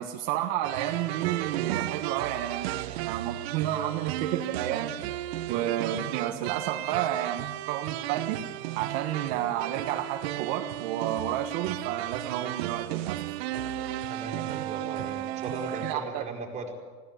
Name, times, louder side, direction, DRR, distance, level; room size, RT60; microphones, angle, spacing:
voice 1, 0.0-8.4 8.7-13.7 15.8-16.2, right 11 dB, 60° right, 3 dB, 1.5 m, -31 dB
sound 1, 0.6-15.9, right 14 dB, 80° right, 1.1 m, -34 dB
voice 2, 14.1-16.7, right 3 dB, 20° right, 0 dB, 4.8 m, -37 dB
20.5 x 17.0 x 8.0 m, 1.4 s
supercardioid pair, 140°, 31 cm